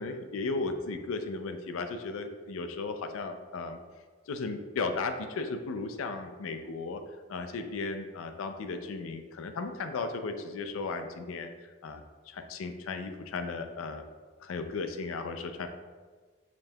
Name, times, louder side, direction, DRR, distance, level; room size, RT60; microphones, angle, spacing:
voice 1, 0.0-3.8 4.3-7.0 7.3-14.1 14.4-15.7, left 3 dB, 90° left, 7 dB, 0.4 m, -35 dB
5.0 x 2.7 x 2.2 m, 1.4 s
head